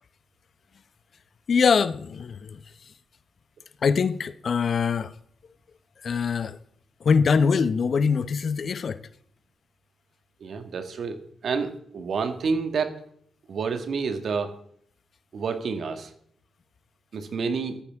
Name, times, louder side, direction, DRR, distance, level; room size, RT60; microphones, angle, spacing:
voice 1, 1.5-2.6 3.8-5.1 6.0-6.6 7.0-9.0, left 5 dB, 60° left, 0.9 m, -23 dB
voice 2, 10.4-11.2 11.4-13.0 13.5-14.5 15.3-16.1 17.1-17.8, right 5 dB, 65° right, 1.8 m, -29 dB
17.0 x 13.5 x 3.6 m
hypercardioid pair, 40°, 0 cm